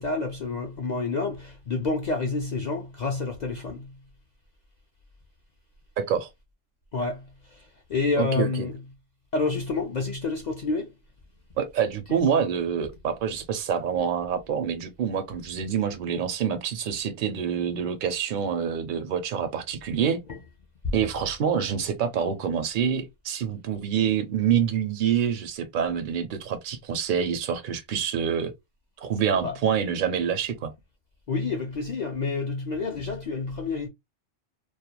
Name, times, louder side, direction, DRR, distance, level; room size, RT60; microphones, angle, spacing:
voice 1, 0.0-4.0 6.9-8.8 9.3-10.9 12.1-12.2 20.3-20.4 20.8-20.9 29.4-29.6 31.3-33.9, left 3 dB, 60° left, 0.4 m, -29 dB
voice 2, 6.0-6.3 8.2-8.7 11.6-20.2 20.9-28.5 29.0-30.7, right 8 dB, 60° right, 0.5 m, -26 dB
2.3 x 2.1 x 2.8 m
omnidirectional pair, 1.3 m